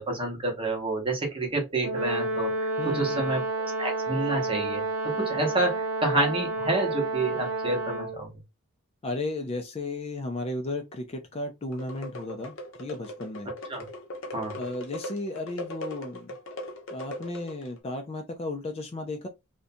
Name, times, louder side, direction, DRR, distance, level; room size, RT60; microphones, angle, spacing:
voice 1, 0.0-2.7 2.9-4.8 5.2-8.3 13.7-13.8 14.3-14.5, right 2 dB, 25° right, 0.8 m, -29 dB
Brass instrument, 1.8-8.2, right 2 dB, 60° right, 0.4 m, -30 dB
voice 2, 2.8-3.3 9.0-13.5 14.6-16.3 16.9-19.3, left 2 dB, 25° left, 0.3 m, -34 dB
sound 1, 11.7-17.8, left 1 dB, 60° left, 0.7 m, -39 dB
2.5 x 2.2 x 2.6 m
head